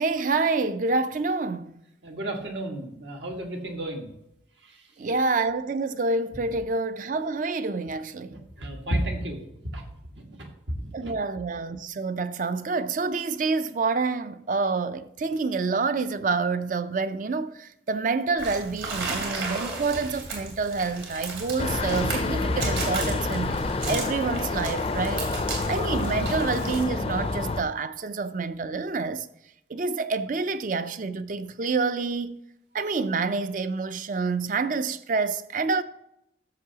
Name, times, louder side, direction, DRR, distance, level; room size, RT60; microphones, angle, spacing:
voice 1, 0.0-1.7 5.0-8.4 10.9-29.3 29.7-32.4 32.7-35.8, right 4 dB, 45° right, 0.4 m, -28 dB
voice 2, 2.0-4.1 4.6-4.8 8.3-9.4 9.7-9.8 10.1-10.5 11.0-11.1, right 1 dB, 75° right, 1.5 m, -32 dB
sound 1, 18.4-26.8, right 3 dB, 90° right, 2.8 m, -35 dB
sound 2, 21.6-27.6, left 3 dB, 30° left, 0.4 m, -28 dB
13.0 x 6.8 x 2.8 m
head